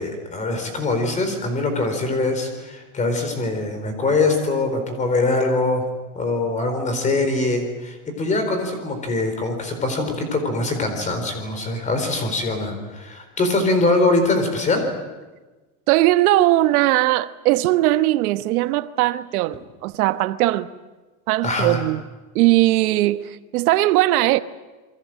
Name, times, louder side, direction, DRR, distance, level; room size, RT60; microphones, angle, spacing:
voice 1, 0.0-5.8 6.1-14.9 21.4-21.8, left 2 dB, 15° left, 4.2 m, -23 dB
voice 2, 15.9-20.7 21.3-22.0 22.3-24.4, right 16 dB, 90° right, 1.3 m, -19 dB
28.5 x 23.0 x 7.7 m
supercardioid pair, 175°, 43 cm